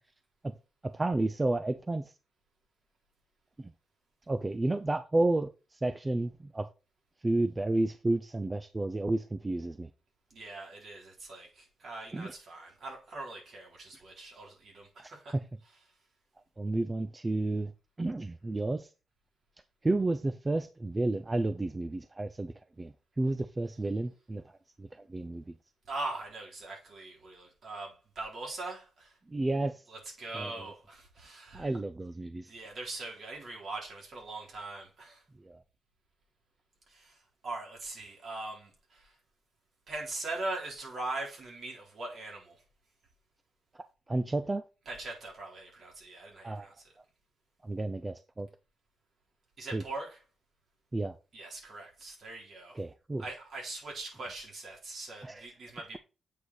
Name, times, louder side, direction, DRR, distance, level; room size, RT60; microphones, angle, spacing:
voice 1, 0.8-2.1 3.6-3.7 4.3-6.7 7.2-9.9 12.1-12.3 15.0-15.4 16.6-17.7 18.0-18.9 19.8-24.4 24.8-25.5 29.3-29.8 30.3-30.5 31.5-32.5 35.4-35.6 43.7-44.6 46.4-46.7 47.6-48.5 49.7-49.8 50.9-51.2 52.7-53.2 55.2-55.5, right 2 dB, 15° right, 0.4 m, -31 dB
voice 2, 10.3-15.9 25.9-29.1 29.9-31.7 32.5-35.2 36.9-37.2 37.4-39.1 39.9-42.6 44.8-46.9 49.6-50.2 51.3-52.8 53.2-56.0, right 2 dB, 55° right, 3.9 m, -41 dB
8.1 x 5.0 x 4.1 m
wide cardioid pair, 155°, 0 cm